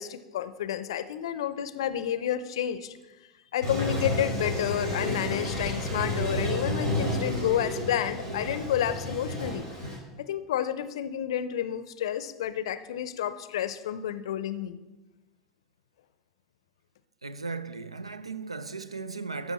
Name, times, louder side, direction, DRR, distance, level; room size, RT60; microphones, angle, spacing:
voice 1, 0.0-2.9 3.5-9.7 10.2-14.8, left 10 dB, 65° left, 0.5 m, -30 dB
Toilet flush, 3.6-10.0, left 1 dB, 70° right, 3.4 m, -31 dB
voice 2, 17.2-19.5, right 4 dB, 85° right, 0.4 m, -36 dB
13.5 x 5.0 x 4.1 m
figure-of-eight pair, 80°, 3 cm